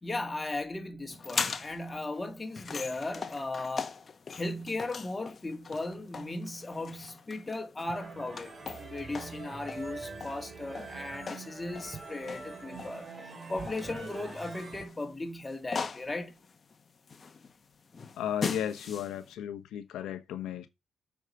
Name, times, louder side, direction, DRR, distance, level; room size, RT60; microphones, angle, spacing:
voice 1, 0.0-3.9 4.3-8.5 8.8-16.4, left 2 dB, 20° left, 2.0 m, -37 dB
sound 1, 1.1-19.3, left 5 dB, 40° left, 1.2 m, -41 dB
sound 2, 7.9-14.9, right 4 dB, 40° right, 3.1 m, -44 dB
voice 2, 18.2-20.7, left 10 dB, 80° left, 1.1 m, -34 dB
7.7 x 4.9 x 5.4 m
cardioid pair, 90°, 0 cm